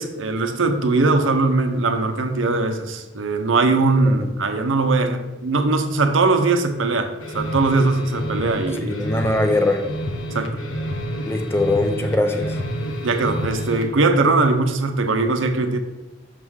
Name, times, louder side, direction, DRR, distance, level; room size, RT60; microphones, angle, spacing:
voice 1, 0.0-9.0 10.3-10.6 13.0-15.8, right 3 dB, 85° right, 0.7 m, -20 dB
sound 1, 7.2-13.9, equal, 85° left, 0.9 m, -29 dB
voice 2, 8.9-9.8 11.3-12.6, left 2 dB, 10° left, 0.6 m, -21 dB
6.5 x 3.7 x 6.2 m
head